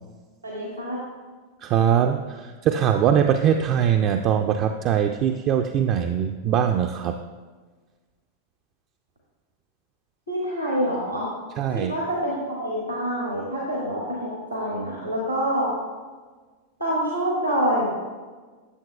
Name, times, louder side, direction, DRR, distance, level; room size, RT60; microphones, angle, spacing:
voice 1, 0.4-1.0 10.3-11.3 11.7-15.7 16.8-17.9, equal, 90° right, -4 dB, 1.4 m, -26 dB
voice 2, 1.6-7.2 11.6-11.9, right 8 dB, 35° right, 5 dB, 0.3 m, -22 dB
9.5 x 7.3 x 2.3 m, 1.4 s
figure-of-eight pair, 90°, 0 cm